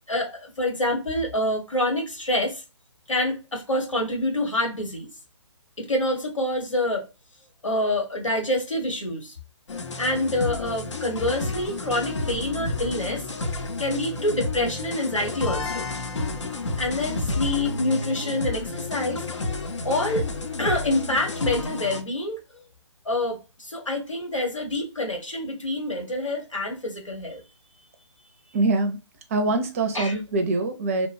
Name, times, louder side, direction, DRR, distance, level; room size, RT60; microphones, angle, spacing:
voice 1, 0.1-2.6 3.1-5.1 5.8-7.1 7.6-9.3 10.0-13.2 13.8-15.9 16.5-19.2 19.8-20.2 20.6-22.4 23.0-27.4 29.9-30.1, left 1 dB, 85° left, 1.3 m, -27 dB
sound 1, 9.7-22.0, left 2 dB, 70° left, 0.6 m, -30 dB
voice 2, 28.5-29.0 29.3-31.1, right 2 dB, 30° right, 0.5 m, -24 dB
2.9 x 2.2 x 2.5 m
figure-of-eight pair, 145°, 16 cm